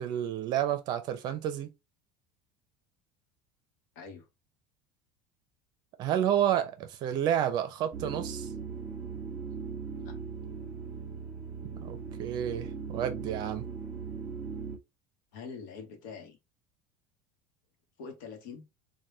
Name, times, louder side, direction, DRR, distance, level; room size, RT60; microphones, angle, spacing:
voice 1, 0.0-1.7 6.0-8.5 11.8-13.6, right 10 dB, 45° right, 0.6 m, -30 dB
voice 2, 4.0-4.3 10.0-10.2 15.3-16.4 18.0-18.6, left 5 dB, 80° left, 0.9 m, -44 dB
sound 1, 7.9-14.8, right 5 dB, 25° right, 1.1 m, -39 dB
3.4 x 2.2 x 2.7 m
cardioid pair, 145°, 10 cm